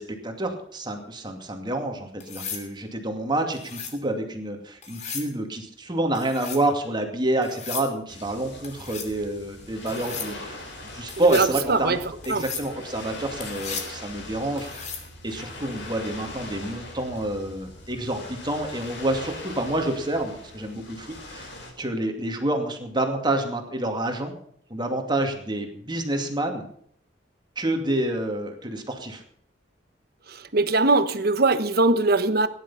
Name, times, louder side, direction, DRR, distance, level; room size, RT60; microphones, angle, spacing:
voice 1, 0.0-10.6 10.9-12.0 12.2-14.9 15.2-21.5 21.8-24.3 24.7-26.6 27.6-29.2, right 1 dB, 25° right, 2.4 m, -28 dB
sound 1, 2.2-2.7 3.5-4.0 4.8-5.3 6.2-6.6 7.4-7.9 8.6-9.1 9.9-10.3 11.1-11.5 12.2-12.7 13.4-13.9 14.6-15.1 17.0-17.3, left 6 dB, 40° left, 3.1 m, -36 dB
sound 2, 8.1-21.7, left 2 dB, 65° left, 4.9 m, -41 dB
voice 2, 11.3-12.0 12.3-12.4 30.5-32.5, right 3 dB, 55° right, 1.2 m, -21 dB
17.5 x 11.0 x 5.7 m
head